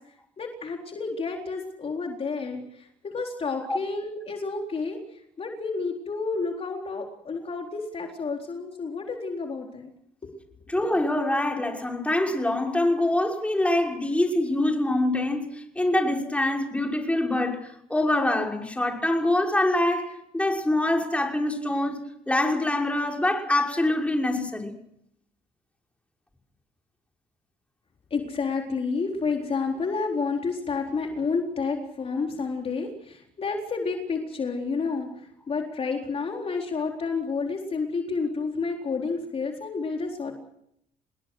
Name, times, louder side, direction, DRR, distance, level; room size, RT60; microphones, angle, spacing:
voice 1, 0.4-9.9 10.2-10.3 28.1-40.3, left 4 dB, 35° left, 4.1 m, -30 dB
voice 2, 10.7-22.0 22.3-24.7, left 1 dB, 5° left, 6.0 m, -25 dB
28.5 x 21.0 x 6.3 m
cardioid pair, 110°, 17 cm